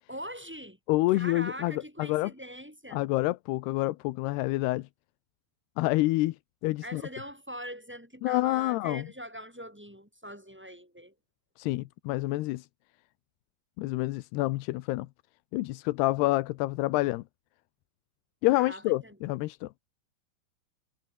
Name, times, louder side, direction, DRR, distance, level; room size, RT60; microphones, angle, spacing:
voice 1, 0.1-0.8 1.1-3.1 6.8-11.1 18.6-19.2, equal, ahead, 5.8 m, -42 dB
voice 2, 0.9-2.3 2.9-4.9 5.8-6.4 6.6-7.0 8.2-9.0 11.6-12.7 13.8-15.1 15.5-17.2 18.4-19.7, left 19 dB, 80° left, 2.7 m, -28 dB
omnidirectional pair, 4.8 m